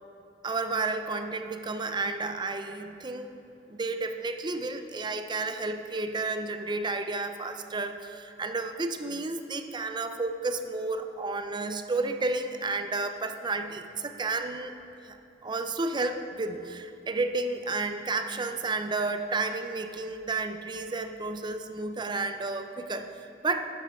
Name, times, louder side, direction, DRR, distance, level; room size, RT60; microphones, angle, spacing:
voice 1, 0.4-3.3 3.7-14.7 15.0-15.2 15.4-23.7, right 3 dB, 25° right, 8 dB, 0.5 m, -31 dB
12.5 x 6.9 x 4.8 m, 2.8 s
head